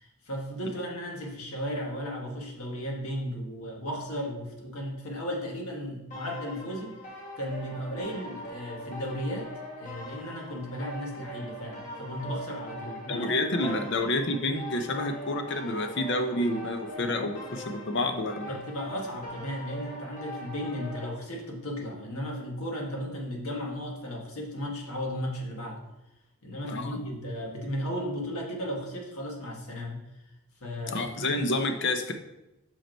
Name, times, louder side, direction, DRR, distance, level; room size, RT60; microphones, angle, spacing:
voice 1, 0.0-7.0 7.4-9.5 9.8-13.3 13.6-13.8 18.5-25.8 26.4-30.0 30.6-31.3, equal, 75° left, 0 dB, 1.6 m, -35 dB
sound 1, 6.1-21.1, equal, 35° left, 1.4 m, -42 dB
voice 2, 13.1-18.6 26.6-27.0 30.9-32.1, left 2 dB, 50° left, 6 dB, 0.6 m, -29 dB
5.7 x 5.2 x 4.5 m, 0.97 s
head